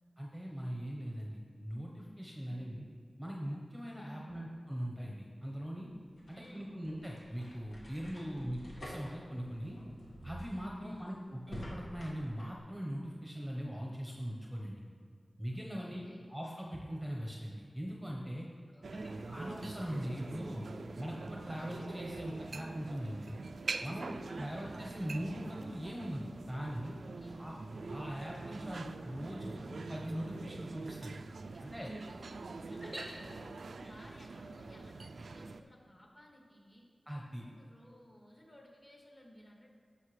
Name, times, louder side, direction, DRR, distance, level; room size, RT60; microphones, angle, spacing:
voice 1, 0.2-2.8 3.2-5.9 6.3-9.8 10.2-14.8 15.4-16.0 16.3-18.5 19.3-20.6 21.0-23.3 23.8-27.0 27.3-27.6 27.9-31.2 31.6-31.9 32.7-33.0 33.8-33.9 37.1-37.4, equal, ahead, -2 dB, 1.0 m, -41 dB
voice 2, 2.4-2.7 4.1-4.4 6.3-6.8 8.3-8.6 10.8-11.2 15.8-16.4 18.7-19.2 24.2-24.6 27.2-27.6 31.5-36.9 37.4-39.7, equal, 35° left, -2 dB, 2.1 m, -57 dB
sound 1, 5.9-12.6, equal, 75° left, 1.9 m, -49 dB
sound 2, 18.8-35.6, right 3 dB, 80° right, 0.3 m, -44 dB
15.0 x 5.6 x 3.3 m, 2.1 s
wide cardioid pair, 80°, 0 cm